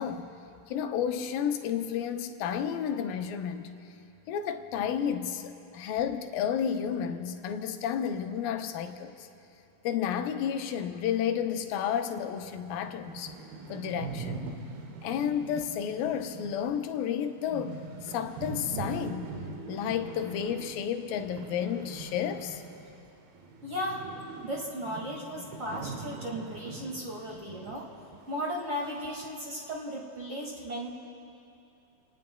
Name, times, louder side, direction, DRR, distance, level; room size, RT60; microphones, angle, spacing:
voice 1, 0.0-3.7 4.3-9.3 9.8-13.3 13.7-14.5 15.0-19.3 19.7-22.6, left 8 dB, 75° left, 6 dB, 2.4 m, -31 dB
sound 1, 12.2-12.3 12.6-12.7 12.9-23.1 23.4-27.8 28.1-28.2 28.8-29.3, right 4 dB, 80° right, 3.1 m, -42 dB
voice 2, 23.6-24.0 24.4-27.9 28.3-30.9, equal, 25° right, -3 dB, 1.8 m, -36 dB
30.0 x 19.0 x 2.3 m, 2.7 s
omnidirectional pair, 4.3 m